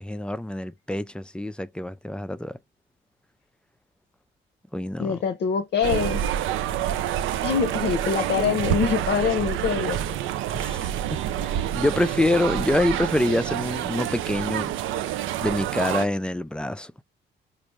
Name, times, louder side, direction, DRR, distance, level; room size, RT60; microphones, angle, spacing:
voice 1, 0.0-2.6 4.7-5.2 10.5-10.8 11.1-14.7 15.4-16.9, left 1 dB, 5° left, 0.3 m, -26 dB
voice 2, 5.0-6.2 7.4-10.2 13.3-13.4, left 7 dB, 60° left, 0.6 m, -24 dB
sound 1, 5.8-16.1, right 11 dB, 80° right, 0.5 m, -27 dB
4.2 x 2.5 x 3.2 m
cardioid pair, 90°, 20 cm